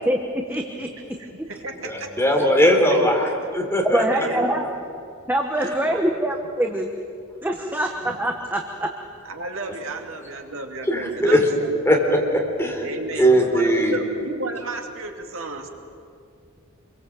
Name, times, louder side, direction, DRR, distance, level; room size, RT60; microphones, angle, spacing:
voice 1, 0.0-0.9 3.9-4.6 5.3-6.9 7.4-8.9, right 1 dB, 10° right, 2 dB, 1.3 m, -24 dB
voice 2, 1.0-2.1 2.4-3.2 4.1-4.7 5.8-6.1 9.2-11.8 12.8-15.7, right 3 dB, 65° right, 3 dB, 2.6 m, -33 dB
voice 3, 1.8-4.0 10.9-11.4 11.9-12.8 13.2-14.0, equal, 10° left, 1 dB, 3.9 m, -19 dB
27.5 x 23.0 x 7.9 m, 2.3 s
head